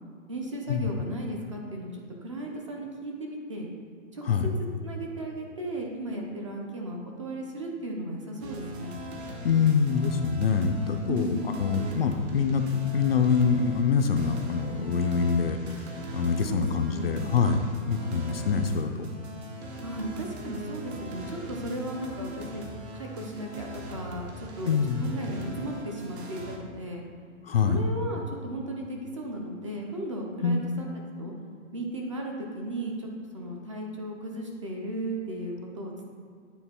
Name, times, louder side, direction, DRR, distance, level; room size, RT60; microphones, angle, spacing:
voice 1, 0.3-3.7 4.1-4.2 4.8-9.0 11.1-11.6 16.4-17.1 19.8-22.6 22.9-24.7 25.0-27.0 27.6-30.9 31.2-31.3 31.7-33.1 33.3-36.1, right 1 dB, 25° right, 0 dB, 0.5 m, -35 dB
sound 1, 8.4-26.6, right 1 dB, 50° right, 1.1 m, -41 dB
voice 2, 9.4-19.1 24.6-25.1 27.4-27.9 30.4-30.7, left 6 dB, 50° left, 6 dB, 0.4 m, -25 dB
9.1 x 3.8 x 4.2 m, 2.3 s
hypercardioid pair, 165°, 40 cm